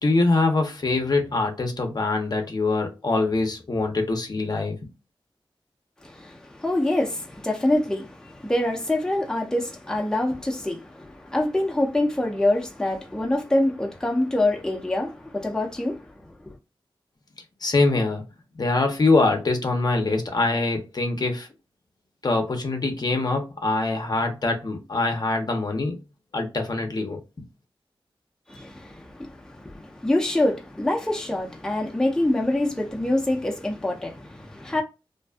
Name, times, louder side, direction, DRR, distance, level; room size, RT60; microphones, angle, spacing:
voice 1, 0.0-4.8 17.6-18.2 18.6-21.5 22.2-26.0 26.3-27.2, left 3 dB, 45° left, 0.6 m, -23 dB
voice 2, 6.0-16.5 28.5-34.8, left 1 dB, 5° left, 0.6 m, -25 dB
2.5 x 2.3 x 2.3 m
wide cardioid pair, 65°, 9 cm